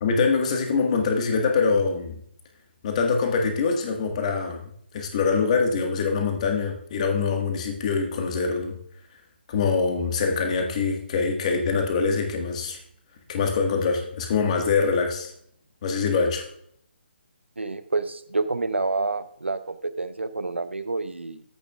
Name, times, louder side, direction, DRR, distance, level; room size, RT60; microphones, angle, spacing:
voice 1, 0.0-2.2 2.8-4.6 4.9-8.7 9.5-12.8 13.3-15.3 15.8-16.4, left 5 dB, 35° left, 3 dB, 1.6 m, -24 dB
voice 2, 17.6-21.4, right 3 dB, 90° right, 12 dB, 0.8 m, -28 dB
14.5 x 6.8 x 2.4 m, 0.67 s
figure-of-eight pair, 150°, 6 cm